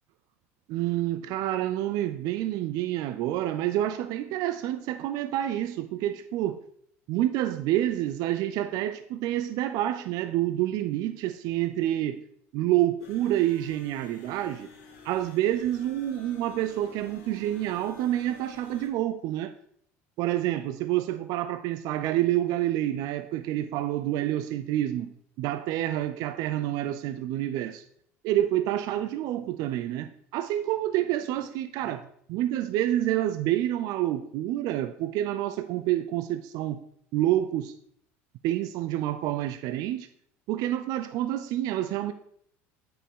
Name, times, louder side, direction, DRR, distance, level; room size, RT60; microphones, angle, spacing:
voice 1, 0.7-6.6 7.1-12.2 12.5-14.7 15.0-19.5 20.2-27.8 28.2-36.8 37.1-37.7 38.4-40.1 40.5-42.1, right 13 dB, 60° right, 0.5 m, -28 dB
sound 1, 13.0-18.9, left 4 dB, 65° left, 2.0 m, -51 dB
8.6 x 5.0 x 3.7 m
hypercardioid pair, 85°, 7 cm